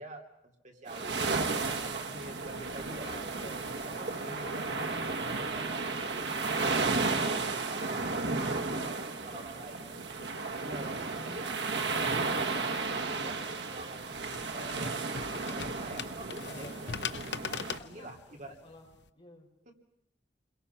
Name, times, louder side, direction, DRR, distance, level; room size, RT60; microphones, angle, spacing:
voice 1, 0.0-3.2 3.9-4.7 5.3-9.9 10.6-11.6 12.4-14.2 14.5-17.0 17.3-17.4 17.8-18.6 19.6-19.7, right 1 dB, 45° right, 3 dB, 2.8 m, -47 dB
sound 1, 0.9-17.8, right 3 dB, 75° right, 1.4 m, -33 dB
voice 2, 2.5-4.7 8.7-10.2 16.4-16.8 17.4-18.9 19.1-19.5, left 1 dB, 30° left, 0 dB, 5.7 m, -51 dB
sound 2, 13.7-19.1, left 6 dB, 70° left, 0.8 m, -42 dB
29.0 x 22.5 x 5.8 m, 0.81 s
head